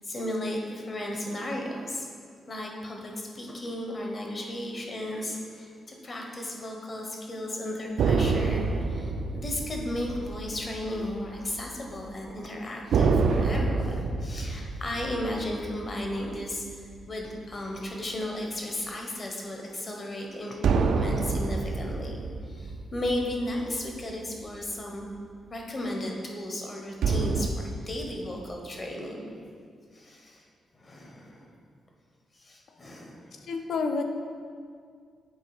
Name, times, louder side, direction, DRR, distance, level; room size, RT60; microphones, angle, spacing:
voice 1, 0.0-2.1 2.5-25.0 25.5-29.2 29.9-30.4 30.7-31.5 32.3-33.2, left 1 dB, 30° left, 0 dB, 0.9 m, -35 dB
sound 1, 8.0-11.7 12.0-12.1 12.9-17.5 20.6-24.2 27.0-27.5, right 4 dB, 75° right, 0.4 m, -28 dB
voice 2, 33.3-34.0, left 4 dB, 65° left, 4 dB, 0.5 m, -29 dB
7.5 x 3.8 x 4.8 m, 2.1 s
cardioid pair, 135°, 0 cm